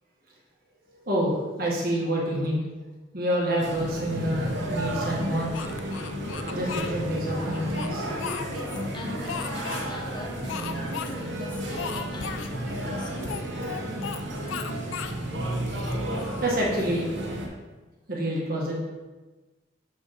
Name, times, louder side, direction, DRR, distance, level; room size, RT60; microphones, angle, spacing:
voice 1, 1.1-2.6 3.1-5.5 6.5-8.1 16.4-17.1 18.1-18.8, right 1 dB, 50° right, -4 dB, 1.6 m, -27 dB
sound 1, 3.6-17.5, right 1 dB, 70° right, 1.1 m, -32 dB
Speech, 5.5-6.9 7.5-8.8 9.3-9.9 10.5-11.1 11.4-11.5 11.8-12.5 13.2-14.2 14.5-15.2 15.7-17.0, left 7 dB, 90° left, 0.4 m, -36 dB
voice 2, 8.5-13.3 15.6-16.4, left 1 dB, 25° left, 1 dB, 0.6 m, -42 dB
6.4 x 5.5 x 3.1 m, 1.2 s
head